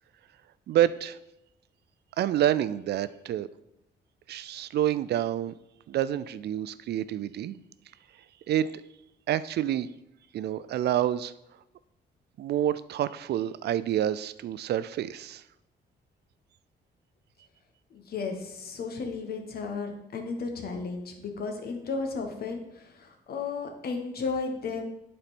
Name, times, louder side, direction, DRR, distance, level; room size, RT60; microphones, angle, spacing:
voice 1, 0.7-1.2 2.2-3.5 4.3-5.5 5.9-7.6 8.5-8.7 9.3-9.9 10.3-11.3 12.4-15.4, right 11 dB, 65° right, 16 dB, 0.4 m, -28 dB
voice 2, 17.9-24.8, left 4 dB, 60° left, 4 dB, 1.3 m, -34 dB
11.0 x 4.3 x 4.3 m, 0.86 s
cardioid pair, 135°, 18 cm